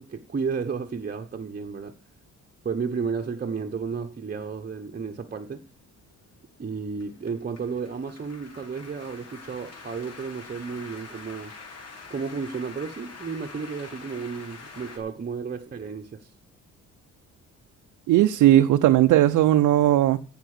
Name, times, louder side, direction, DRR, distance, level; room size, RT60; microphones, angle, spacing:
voice 1, 0.0-1.9 2.6-5.6 6.6-11.6 12.1-16.3, right 5 dB, 30° right, 1.1 m, -32 dB
sound 1, 5.7-15.0, left 4 dB, 55° left, 3.3 m, -45 dB
voice 2, 18.1-20.2, right 13 dB, 75° right, 0.7 m, -18 dB
15.0 x 5.5 x 6.6 m
cardioid pair, 90°, 30 cm